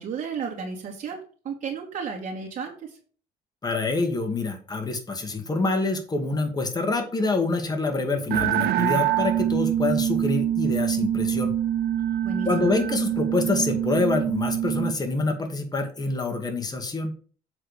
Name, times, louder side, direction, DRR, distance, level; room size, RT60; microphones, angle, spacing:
voice 1, 0.0-3.0 12.2-12.7, right 5 dB, 50° right, -3 dB, 2.4 m, -33 dB
voice 2, 3.6-11.5 12.5-17.1, left 3 dB, 25° left, 4 dB, 2.0 m, -26 dB
sound 1, 8.3-14.9, right 11 dB, 75° right, 0.7 m, -25 dB
8.0 x 3.7 x 6.4 m, 0.40 s
cardioid pair, 110°, 17 cm